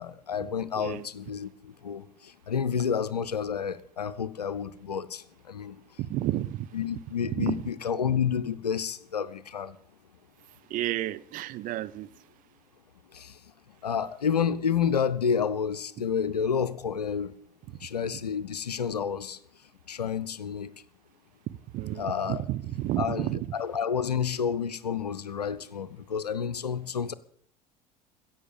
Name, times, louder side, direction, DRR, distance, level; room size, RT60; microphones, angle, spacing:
voice 1, 0.0-5.8 6.7-9.8 13.1-13.4 13.8-17.4 17.8-19.4 19.9-20.7 22.0-22.4 23.0-27.1, left 7 dB, 80° left, 0.7 m, -30 dB
voice 2, 0.7-1.1 6.0-6.7 7.4-7.6 10.7-12.1 16.0-16.1 17.7-17.8 21.7-23.5, right 14 dB, 45° right, 0.6 m, -31 dB
16.0 x 7.5 x 7.0 m
figure-of-eight pair, 65°, 20 cm